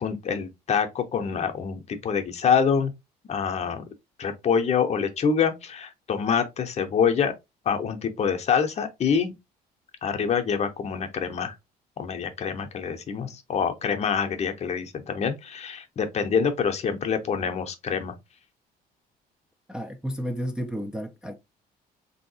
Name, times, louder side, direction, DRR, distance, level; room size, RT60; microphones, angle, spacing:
voice 1, 0.0-2.9 3.3-3.8 4.2-7.3 7.7-9.3 10.0-11.5 12.0-18.1, left 6 dB, 40° left, 0.7 m, -26 dB
voice 2, 19.7-21.4, equal, 5° right, 0.4 m, -32 dB
3.4 x 2.7 x 2.7 m
cardioid pair, 110°, 17 cm